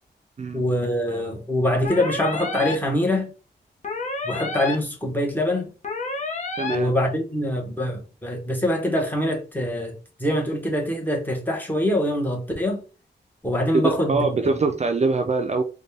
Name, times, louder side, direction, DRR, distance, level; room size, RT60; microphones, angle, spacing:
voice 1, 0.5-3.3 4.2-5.7 6.7-12.8 13.4-14.5, left 1 dB, 10° left, 1.1 m, -24 dB
sound 1, 1.8-2.7 3.8-4.7 5.8-6.7, left 3 dB, 40° left, 0.8 m, -29 dB
voice 2, 6.6-6.9 13.7-15.6, right 4 dB, 40° right, 0.4 m, -23 dB
4.0 x 2.3 x 3.3 m
wide cardioid pair, 100°, 18 cm